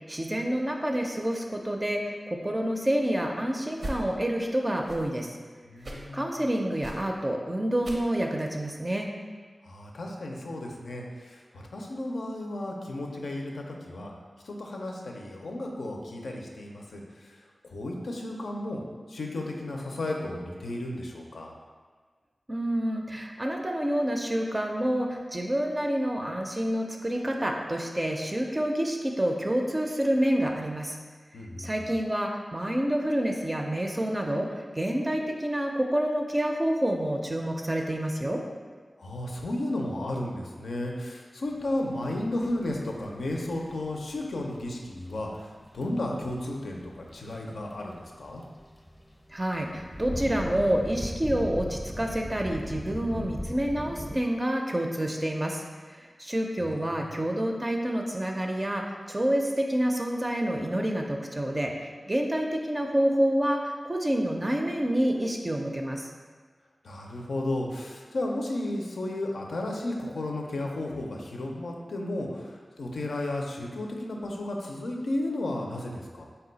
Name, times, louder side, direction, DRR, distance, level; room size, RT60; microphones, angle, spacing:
voice 1, 0.0-5.4 6.1-9.1 22.5-31.0 31.6-38.4 49.3-66.1, right 1 dB, 30° right, 1 dB, 0.4 m, -28 dB
sound 1, 3.8-4.0 4.8-5.1 5.8-6.1 6.8-7.1 7.8-8.1 8.8-8.9, right 1 dB, 75° right, 0.6 m, -39 dB
voice 2, 5.7-6.4 9.6-14.1 14.4-17.4 17.6-18.8 19.1-21.5 31.3-31.7 39.0-48.4 56.9-57.1 66.8-76.3, left 1 dB, 90° left, 0 dB, 0.4 m, -33 dB
sound 2, 41.5-54.1, left 1 dB, 20° left, 0.6 m, -40 dB
4.0 x 2.2 x 3.9 m, 1.5 s
cardioid pair, 45°, 0 cm